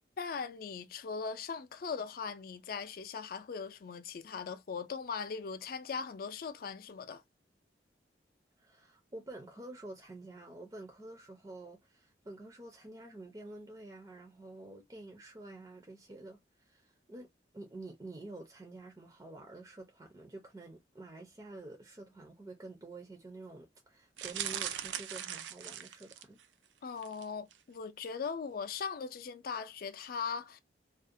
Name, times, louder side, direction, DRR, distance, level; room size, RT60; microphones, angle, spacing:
voice 1, 0.2-7.2 26.8-30.6, left 5 dB, 55° left, 0.4 m, -39 dB
voice 2, 8.6-17.3 17.5-26.4, right 2 dB, 20° right, 0.4 m, -49 dB
sound 1, 24.2-26.4 27.0-27.2 27.5-27.6, right 10 dB, 85° right, 0.4 m, -40 dB
2.4 x 2.0 x 2.5 m
head